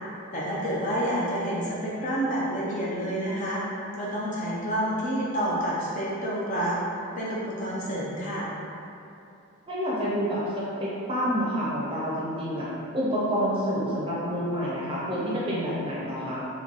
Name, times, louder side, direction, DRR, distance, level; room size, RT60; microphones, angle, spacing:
voice 1, 0.3-3.6 3.9-6.8 7.2-8.5, equal, 35° left, -6 dB, 0.5 m, -28 dB
voice 2, 9.7-12.7 12.9-16.4, equal, 25° right, -8 dB, 0.6 m, -28 dB
3.1 x 2.2 x 3.8 m, 2.7 s
head